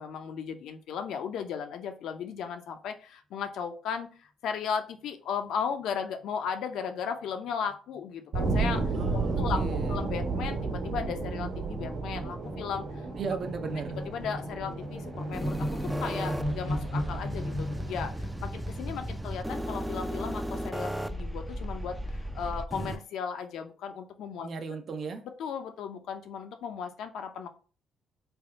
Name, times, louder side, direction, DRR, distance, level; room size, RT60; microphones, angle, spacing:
voice 1, 0.0-13.1 13.9-15.7 16.0-24.5 25.4-27.5, left 7 dB, 80° left, 7 dB, 0.6 m, -36 dB
sound 1, 7.7-8.0 8.3-8.5 8.7-18.4, left 1 dB, 25° right, 1.1 m, -38 dB
sound 2, 8.3-19.1, right 3 dB, 70° right, 1.1 m, -33 dB
voice 2, 8.9-10.0 13.2-14.0 24.4-25.2, right 5 dB, 55° right, 7 dB, 0.6 m, -36 dB
sound 3, 15.3-23.0, equal, 5° right, 0.4 m, -35 dB
3.4 x 2.3 x 4.0 m, 0.37 s
cardioid pair, 90°, 0 cm